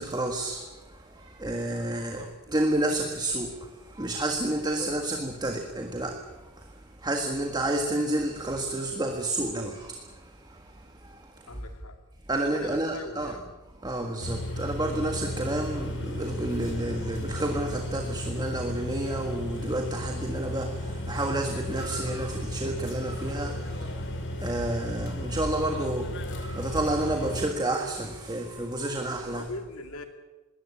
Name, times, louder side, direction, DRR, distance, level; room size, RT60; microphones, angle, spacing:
voice 1, 0.0-6.3 6.6-6.7 7.0-10.1 10.5-11.2 11.5-11.6 12.3-13.4 13.8-29.4, right 1 dB, 20° right, 4 dB, 1.6 m, -30 dB
voice 2, 1.9-2.3 2.7-3.1 4.6-5.2 11.5-12.0 12.4-13.4 29.3-30.1, left 2 dB, 75° left, 6 dB, 2.5 m, -42 dB
sound 1, 14.2-27.5, left 1 dB, 55° left, 3.0 m, -34 dB
21.0 x 17.5 x 8.5 m, 1.2 s
head